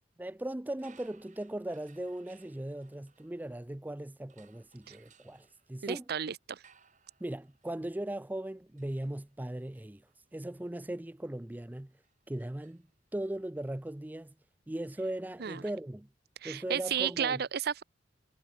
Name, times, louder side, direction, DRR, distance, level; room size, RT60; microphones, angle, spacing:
voice 1, 0.2-6.1 7.2-10.1 10.3-12.0 12.3-12.9 13.1-14.3 14.7-16.1 16.4-17.4, right 1 dB, 10° right, 0.4 m, -38 dB
sound 1, 0.7-3.8 4.3-13.3, right 6 dB, 45° right, 6.4 m, -66 dB
voice 2, 5.8-6.6 15.4-15.6 16.4-17.8, right 8 dB, 60° right, 0.6 m, -32 dB
head